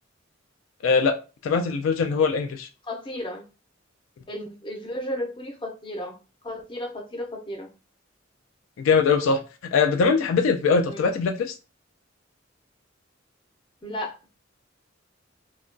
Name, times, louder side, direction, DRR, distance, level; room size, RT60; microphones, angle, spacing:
voice 1, 0.8-1.2 1.4-2.7 8.8-11.5, left 5 dB, 85° left, 0.3 m, -22 dB
voice 2, 2.8-3.4 4.3-6.1 6.4-7.7 10.8-11.1 13.8-14.1, left 1 dB, 25° left, 0.5 m, -33 dB
2.3 x 2.1 x 2.5 m
head